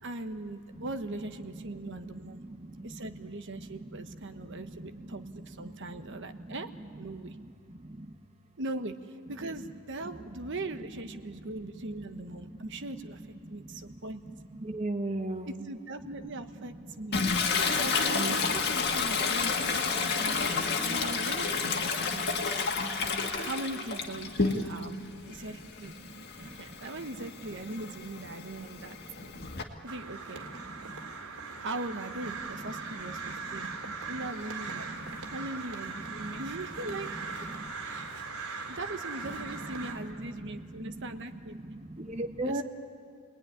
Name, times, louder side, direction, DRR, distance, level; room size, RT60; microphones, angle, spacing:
voice 1, 0.0-2.4 2.8-6.7 7.0-7.4 8.6-13.2 13.5-14.3 15.5-17.2 17.7-23.1 23.4-25.9 26.4-29.0 29.8-30.5 31.6-33.7 34.1-34.9 35.3-37.1 37.7-38.1 38.3-41.6 42.4-42.6, right 2 dB, 55° right, 8 dB, 1.1 m, -40 dB
voice 2, 14.7-15.6 18.1-18.4 42.1-42.6, right 2 dB, 30° right, 5 dB, 0.9 m, -32 dB
Toilet flush, 17.1-24.9 25.3-29.6, left 4 dB, 50° left, 1.8 m, -30 dB
Crow, 29.9-39.9, right 4 dB, 85° right, 3.1 m, -40 dB
28.5 x 20.0 x 10.0 m, 2.3 s
head